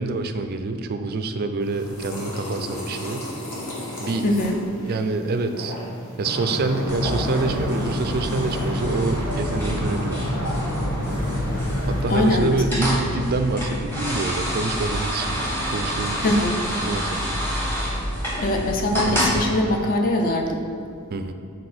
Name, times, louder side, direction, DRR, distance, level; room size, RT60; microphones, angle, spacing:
voice 1, 0.0-3.2 4.0-4.3 4.8-5.8 6.2-10.3 11.9-16.3 16.8-17.3 21.1-21.3, right 3 dB, 45° right, 8 dB, 0.4 m, -26 dB
sound 1, 1.6-8.7, left 1 dB, 70° left, 1.3 m, -36 dB
voice 2, 4.2-4.6 12.1-13.0 16.2-16.6 18.4-20.6, left 1 dB, 40° left, 3 dB, 0.6 m, -22 dB
sound 2, 6.2-12.0, left 1 dB, 90° left, 1.3 m, -28 dB
sound 3, 6.9-19.4, equal, 10° left, 1.1 m, -28 dB
6.6 x 4.2 x 4.2 m, 2.5 s
head